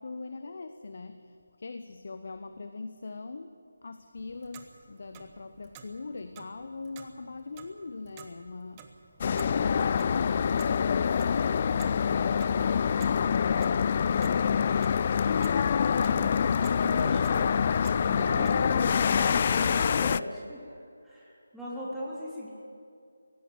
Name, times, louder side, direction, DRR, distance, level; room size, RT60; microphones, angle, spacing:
voice 1, 0.0-9.0, left 3 dB, 50° left, 9 dB, 0.9 m, -42 dB
Clock, 4.1-18.5, right 7 dB, 15° right, 1.2 m, -52 dB
sound 1, 9.2-20.2, left 7 dB, 35° left, 0.4 m, -25 dB
voice 2, 16.8-22.5, left 1 dB, ahead, -10 dB, 3.3 m, -38 dB
17.5 x 16.0 x 9.7 m, 2.5 s
figure-of-eight pair, 155°, 0 cm